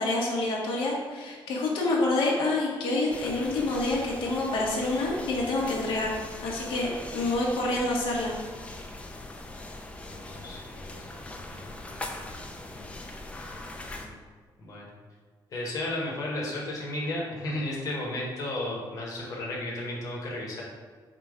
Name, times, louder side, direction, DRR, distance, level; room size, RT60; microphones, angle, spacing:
voice 1, 0.0-6.1 6.4-8.3, left 2 dB, 85° left, -3 dB, 1.0 m, -27 dB
sound 1, 3.1-14.1, left 2 dB, 15° left, 0.3 m, -41 dB
voice 2, 10.1-12.3 12.7-12.9 14.0-14.2 14.6-14.9 15.5-20.6, left 1 dB, 45° left, -4 dB, 0.9 m, -34 dB
5.0 x 2.2 x 4.8 m, 1.5 s
cardioid pair, 170°, 8 cm